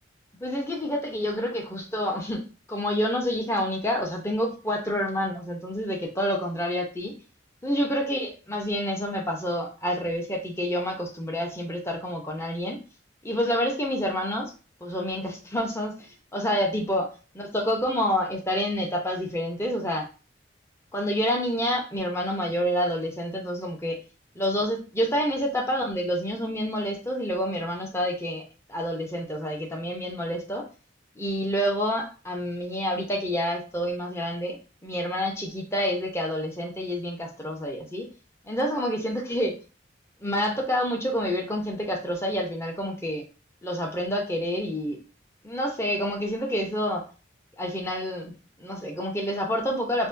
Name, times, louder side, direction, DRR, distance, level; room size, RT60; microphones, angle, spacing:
voice 1, 0.4-7.1 7.6-12.8 13.2-14.5 14.8-17.1 17.4-20.1 20.9-24.0 24.3-28.4 28.7-30.7 31.2-38.1 38.4-39.6 40.2-43.2 43.6-45.0 45.4-47.0 47.6-48.3 48.6-50.1, equal, 15° left, 1 dB, 0.7 m, -28 dB
5.8 x 2.2 x 2.6 m, 0.35 s
head